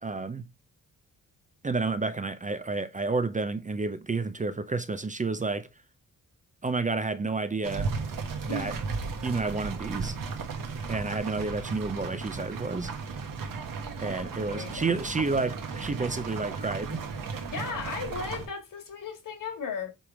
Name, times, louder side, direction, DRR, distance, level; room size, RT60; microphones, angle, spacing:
voice 1, 0.0-0.4 1.6-5.7 6.6-7.9 8.4-8.7 9.2-10.2 10.9-12.9 14.0-17.0, right 3 dB, 25° right, 0.5 m, -30 dB
sound 1, 7.6-18.5, right 5 dB, 75° right, 1.6 m, -35 dB
voice 2, 14.3-15.3 17.5-19.9, left 4 dB, 70° left, 2.2 m, -36 dB
7.5 x 3.6 x 4.7 m
wide cardioid pair, 140°, 33 cm